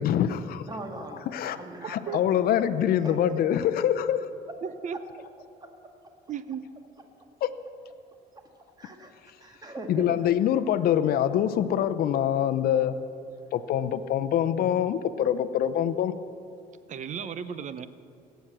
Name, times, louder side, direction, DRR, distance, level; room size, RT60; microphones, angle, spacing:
voice 1, 0.0-0.6 1.3-1.6 1.9-4.3 7.4-7.5 9.9-12.9 13.5-16.1, left 10 dB, 65° left, 11 dB, 0.6 m, -25 dB
voice 2, 0.7-2.4 3.0-3.4 5.6-5.7 8.8-10.3, right 1 dB, 25° right, 4 dB, 2.0 m, -41 dB
voice 3, 4.6-5.0 6.3-6.6 16.9-17.9, right 8 dB, 45° right, 14 dB, 0.7 m, -34 dB
17.5 x 8.1 x 7.5 m, 2.4 s
cardioid pair, 110°, 17 cm